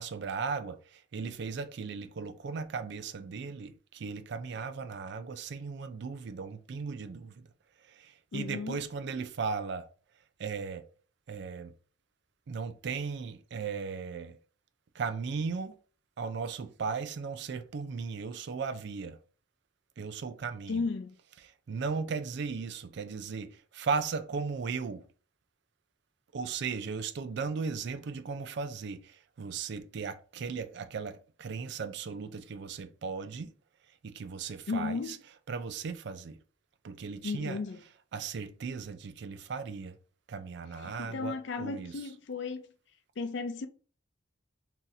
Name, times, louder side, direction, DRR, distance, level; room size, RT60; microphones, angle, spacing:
voice 1, 0.0-7.3 8.0-9.9 10.4-10.8 11.3-11.7 12.5-14.4 15.0-15.7 16.2-19.2 20.0-20.9 21.7-25.0 26.3-33.5 34.0-35.2 35.5-36.4 36.8-37.6 38.1-40.0 40.3-42.0, right 5 dB, 60° right, 0.4 m, -36 dB
voice 2, 8.3-8.8 20.7-21.1 34.7-35.2 37.2-37.8 40.8-42.6 43.2-43.7, left 4 dB, 60° left, 0.4 m, -35 dB
2.8 x 2.5 x 3.9 m
head